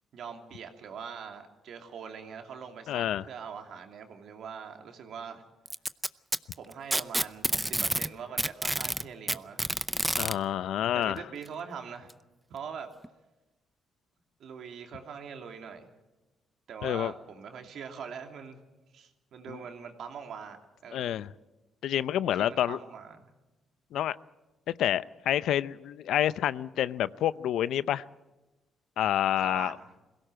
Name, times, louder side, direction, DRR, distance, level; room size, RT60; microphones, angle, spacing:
voice 1, 0.1-5.4 6.6-9.7 10.9-12.1 12.5-12.9 14.4-15.9 16.7-18.6 18.9-20.6 20.8-21.2 22.5-23.3 29.4-29.8, right 6 dB, 70° right, 4 dB, 2.8 m, -42 dB
voice 2, 2.9-3.2 10.2-11.2 16.8-17.1 19.5-19.6 20.9-21.3 21.8-22.8 23.9-24.2 24.7-28.0 29.0-29.8, left 11 dB, 80° left, 17 dB, 0.6 m, -28 dB
Packing tape duct tape, 5.7-8.1 8.4-10.3 11.5-11.6 12.1-12.2 13.0-13.1, right 1 dB, 10° right, 0.6 m, -28 dB
21.5 x 17.0 x 7.6 m, 1.1 s
cardioid pair, 90°, 0 cm